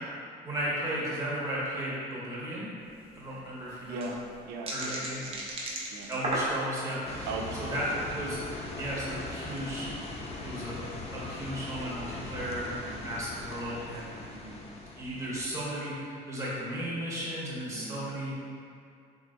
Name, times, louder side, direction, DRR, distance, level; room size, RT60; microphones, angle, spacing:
voice 1, 0.4-2.7 3.1-4.1 4.7-5.2 6.1-7.3 7.6-8.4 8.8-9.9 10.4-10.9 11.1-12.6 13.0-14.2 15.0-18.3, equal, 20° right, -8 dB, 1.1 m, -35 dB
sound 1, 2.9-3.0 3.1-3.2 3.7-7.0 7.5-7.8, right 1 dB, 35° right, 0.6 m, -34 dB
voice 2, 3.9-5.4 5.9-6.1 7.3-8.1 12.7-13.0 14.3-14.7 17.7-18.0, right 3 dB, 90° right, 2 dB, 0.4 m, -40 dB
sound 2, 7.0-15.6, left 2 dB, 40° left, 0.5 m, -40 dB
3.5 x 3.1 x 2.5 m, 2.5 s
cardioid pair, 110°, 17 cm